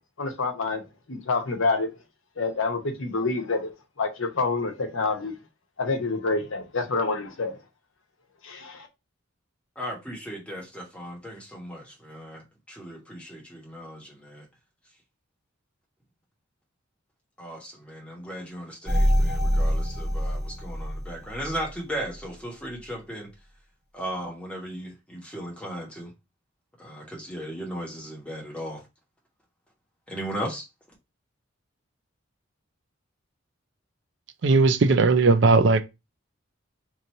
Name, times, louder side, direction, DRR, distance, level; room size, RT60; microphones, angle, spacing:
voice 1, 0.2-0.8 1.1-1.9 2.4-3.7 4.0-5.3 5.8-7.5 8.4-8.9, left 3 dB, 75° left, 0.9 m, -27 dB
voice 2, 9.8-14.4 17.4-23.3 23.9-26.1 26.8-28.8 30.1-30.7, equal, 5° left, 1.1 m, -36 dB
sound 1, 18.9-21.7 22.2-22.3, equal, 20° right, 1.4 m, -25 dB
voice 3, 34.4-35.8, right 3 dB, 60° right, 0.4 m, -18 dB
3.1 x 2.6 x 4.0 m
head